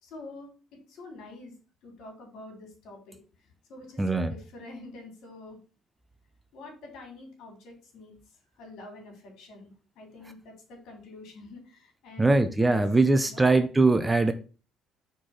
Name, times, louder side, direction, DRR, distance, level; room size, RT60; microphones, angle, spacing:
voice 1, 0.0-1.5 1.8-3.2 3.7-5.6 6.5-12.8 13.2-13.5, left 2 dB, 70° left, 3.2 m, -47 dB
voice 2, 4.0-4.3 12.2-14.3, right 3 dB, 10° right, 0.6 m, -21 dB
4.8 x 4.5 x 5.6 m
cardioid pair, 130°, 0 cm